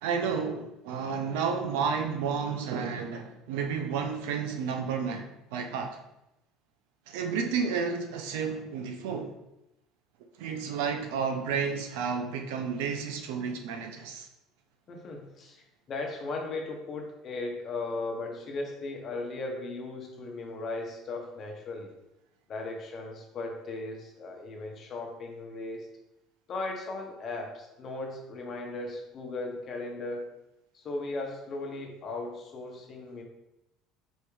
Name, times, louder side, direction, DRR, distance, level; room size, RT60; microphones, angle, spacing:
voice 1, 0.0-6.0 7.1-9.4 10.4-14.3, right 6 dB, 90° right, 5 dB, 0.6 m, -31 dB
voice 2, 14.9-21.9 22.5-25.9 26.5-30.3 30.7-33.2, left 2 dB, 35° left, 2 dB, 0.9 m, -37 dB
4.4 x 3.4 x 3.2 m, 0.88 s
cardioid pair, 140°, 0 cm